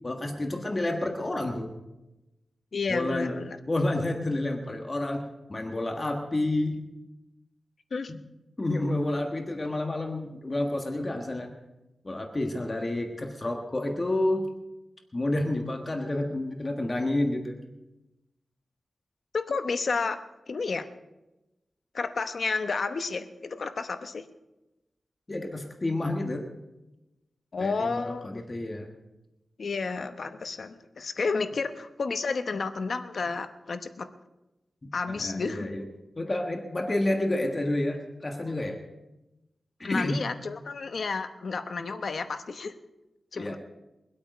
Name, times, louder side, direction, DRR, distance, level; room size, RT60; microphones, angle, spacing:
voice 1, 0.0-1.7 2.9-3.3 3.7-6.8 8.6-11.5 12.0-14.5 15.1-17.6 25.3-26.4 27.6-28.9 35.1-35.8 36.2-38.8 39.8-40.2 43.3-43.6, left 1 dB, 30° left, 3 dB, 1.4 m, -29 dB
voice 2, 2.7-3.6 7.9-8.1 19.3-20.2 20.5-20.8 21.9-24.2 27.5-28.4 29.6-34.1 34.9-35.7 39.8-42.8 43.3-43.6, left 4 dB, 60° left, 9 dB, 0.9 m, -31 dB
23.0 x 8.4 x 5.1 m, 1.0 s
wide cardioid pair, 135°, 0 cm